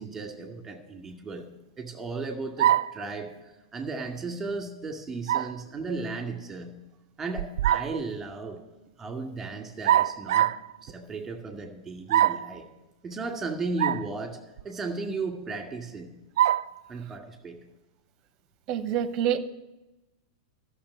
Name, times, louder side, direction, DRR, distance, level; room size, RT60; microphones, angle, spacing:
voice 1, 0.0-1.4 1.8-3.3 3.7-6.7 7.2-8.6 9.0-10.5 10.8-12.7 13.0-14.4 14.6-16.1 16.9-17.6, right 3 dB, 15° right, 3 dB, 2.2 m, -35 dB
sound 1, 2.6-3.0 5.3-5.6 7.4-8.0 9.8-10.7 12.1-12.5 13.8-14.1 14.6-14.7 16.4-16.7, right 12 dB, 60° right, 0.3 m, -23 dB
voice 2, 18.7-19.4, right 10 dB, 35° right, 13 dB, 0.9 m, -26 dB
13.0 x 6.7 x 9.7 m, 1.0 s
figure-of-eight pair, 95°, 2 cm